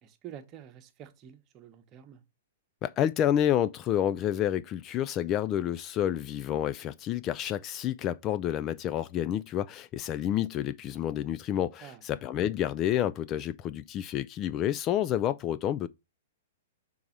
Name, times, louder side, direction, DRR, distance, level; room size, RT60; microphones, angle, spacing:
voice 1, 0.0-2.2 11.8-12.0, right 10 dB, 30° right, 1.0 m, -48 dB
voice 2, 2.8-15.9, left 11 dB, 30° left, 0.3 m, -29 dB
5.8 x 3.9 x 5.7 m
figure-of-eight pair, 110°, 0 cm